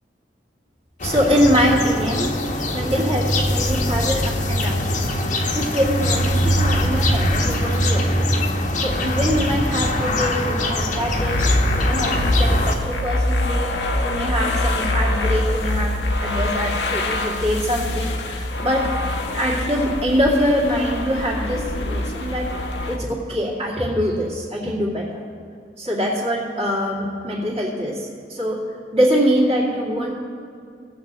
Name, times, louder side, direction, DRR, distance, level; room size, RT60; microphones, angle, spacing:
sound 1, 1.0-12.7, left 1 dB, 45° left, 1.0 m, -22 dB
voice 1, 1.0-2.3 2.7-4.8 5.4-13.7 14.0-18.9 19.3-22.5 22.9-25.2 25.8-28.6 28.9-30.1, equal, 35° right, -4 dB, 2.3 m, -23 dB
sound 2, 11.1-23.0, left 1 dB, 75° left, 0.9 m, -24 dB
17.5 x 7.5 x 4.1 m, 2.3 s
head